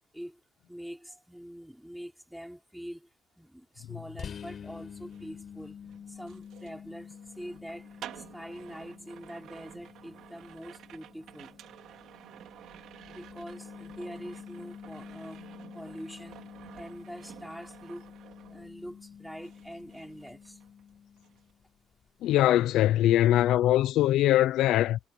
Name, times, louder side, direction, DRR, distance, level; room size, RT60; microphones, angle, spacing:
voice 1, 0.7-3.1 3.4-5.8 6.1-11.6 13.1-15.4 15.7-16.4 16.7-18.1 18.5-20.6, equal, ahead, 4.5 m, -44 dB
sound 1, 4.2-21.7, left 7 dB, 45° left, 5.0 m, -48 dB
sound 2, 5.0-19.1 19.4-20.9 21.2-21.5, right 11 dB, 65° right, 4.2 m, -51 dB
voice 2, 22.2-25.0, left 13 dB, 75° left, 0.6 m, -22 dB
cardioid pair, 115°, 0 cm